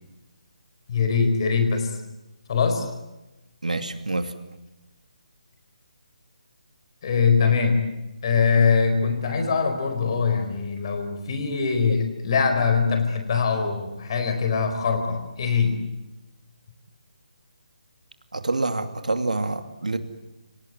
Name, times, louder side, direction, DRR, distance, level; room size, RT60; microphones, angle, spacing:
voice 1, 0.9-1.9 2.5-2.9 7.0-7.9 8.2-15.8, left 5 dB, 40° left, 6 dB, 4.5 m, -22 dB
voice 2, 3.6-4.3 18.3-20.0, right 2 dB, 90° right, 8 dB, 2.5 m, -27 dB
27.5 x 18.0 x 9.5 m, 1.0 s
figure-of-eight pair, 155°, 4 cm